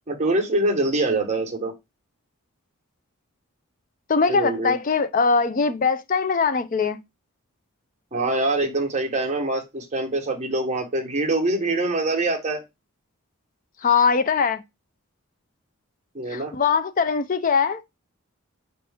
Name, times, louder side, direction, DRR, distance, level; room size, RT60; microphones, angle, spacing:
voice 1, 0.1-1.7 4.3-4.8 8.1-12.6 16.1-16.5, right 2 dB, 30° right, 1.0 m, -24 dB
voice 2, 4.1-7.0 13.8-14.6 16.3-17.8, left 5 dB, 35° left, 0.4 m, -21 dB
5.3 x 2.8 x 3.4 m
head